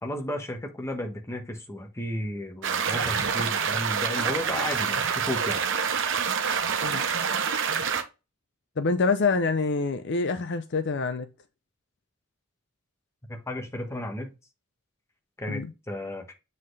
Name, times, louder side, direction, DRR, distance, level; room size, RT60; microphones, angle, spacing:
voice 1, 0.0-5.6 13.3-14.3 15.4-16.3, left 1 dB, 15° left, 1.1 m, -33 dB
sound 1, 2.6-8.0, right 6 dB, 60° right, 0.8 m, -27 dB
voice 2, 8.8-11.3 15.5-15.7, left 4 dB, 55° left, 0.6 m, -26 dB
7.5 x 4.1 x 3.3 m
head